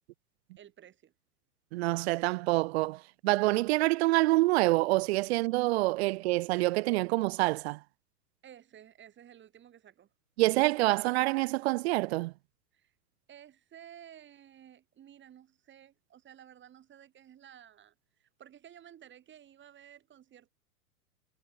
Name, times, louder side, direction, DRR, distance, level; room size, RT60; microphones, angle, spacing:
voice 1, 0.6-1.1 8.4-10.1 12.7-12.9 13.3-20.5, right 10 dB, 25° right, 3.6 m, -54 dB
voice 2, 1.7-7.8 10.4-12.3, right 21 dB, 45° right, 0.8 m, -27 dB
figure-of-eight pair, 100°, 46 cm